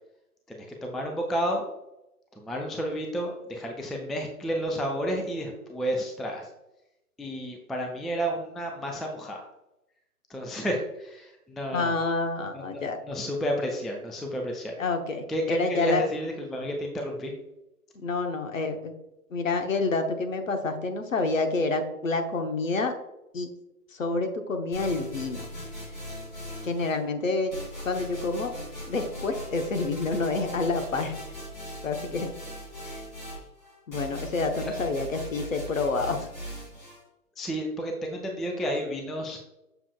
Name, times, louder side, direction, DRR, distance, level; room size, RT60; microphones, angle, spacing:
voice 1, 0.5-1.7 2.3-6.5 7.2-9.4 10.3-11.9 12.5-12.6 13.1-14.8 15.3-17.3 34.6-34.7 37.4-39.4, equal, ahead, 1 dB, 0.3 m, -31 dB
voice 2, 11.7-13.0 14.8-16.0 17.9-18.9 19.3-22.9 23.3-23.5 23.9-25.5 26.6-27.5 27.8-28.5 28.9-31.2 31.8-32.3 32.8-33.0 33.9-36.3, left 3 dB, 55° left, 6 dB, 1.0 m, -28 dB
sound 1, 24.7-27.0 27.5-37.0, equal, 30° left, 2.1 m, -39 dB
6.8 x 6.6 x 2.3 m, 0.91 s
hypercardioid pair, 180°, 46 cm